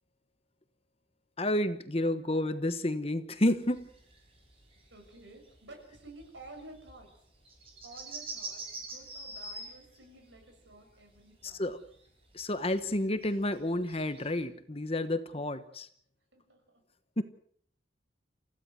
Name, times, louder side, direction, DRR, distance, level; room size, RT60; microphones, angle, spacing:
voice 1, 1.4-3.9 11.4-11.8 12.3-15.9 17.2-17.3, left 1 dB, 30° left, 11 dB, 1.1 m, -30 dB
sound 1, 3.5-10.0 10.3-10.8 11.1-12.4 12.7-14.4, right 2 dB, 30° right, 5.6 m, -45 dB
voice 2, 4.9-7.2 7.8-11.8 16.3-16.8, right 2 dB, 70° right, 4 dB, 7.0 m, -52 dB
29.5 x 16.0 x 6.4 m, 0.63 s
head